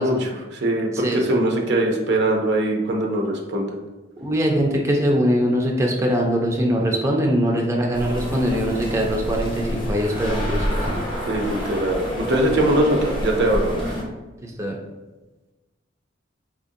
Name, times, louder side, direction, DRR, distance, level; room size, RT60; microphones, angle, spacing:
voice 1, 0.0-3.8 11.3-13.9, right 1 dB, 65° right, 1 dB, 0.5 m, -22 dB
voice 2, 1.0-1.4 4.2-11.0 14.4-14.8, equal, 15° right, -1 dB, 0.4 m, -22 dB
sound 1, 7.9-14.0, equal, 25° left, 0.8 m, -28 dB
4.3 x 2.5 x 2.6 m, 1.2 s
head